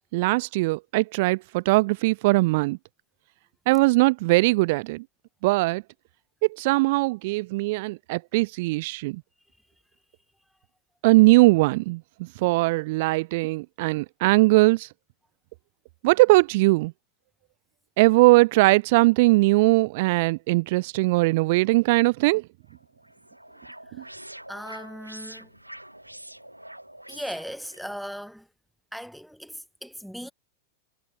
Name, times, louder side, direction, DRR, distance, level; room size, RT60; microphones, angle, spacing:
voice 1, 0.1-2.8 3.7-5.0 5.4-5.8 6.5-9.2 11.0-14.9 16.0-16.9 18.0-22.4, right 22 dB, 50° right, 0.3 m, -20 dB
sound 1, 22.7-27.9, right 1 dB, 85° right, 1.3 m, -45 dB
voice 2, 24.5-25.5 27.1-28.5 28.9-30.3, equal, ahead, 1.6 m, -38 dB
figure-of-eight pair, 90°, 0 cm